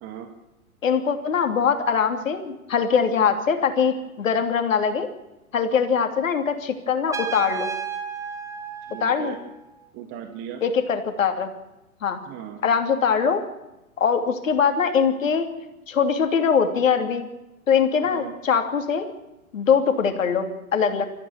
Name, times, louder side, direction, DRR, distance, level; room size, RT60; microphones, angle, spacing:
voice 1, 0.8-5.1 5.5-7.7 9.0-9.3 10.6-11.5 12.0-12.2 12.6-13.4 14.0-15.5 15.9-17.2 17.7-19.0 19.5-21.1, left 6 dB, 60° left, 7 dB, 3.1 m, -22 dB
Trumpet, 7.1-9.8, right 6 dB, 5° right, 1.5 m, -33 dB
voice 2, 8.9-9.4 9.9-10.6 12.3-12.6 18.0-18.3, right 9 dB, 30° right, 5 dB, 2.0 m, -37 dB
25.5 x 14.5 x 7.3 m, 0.98 s
figure-of-eight pair, 110°, 43 cm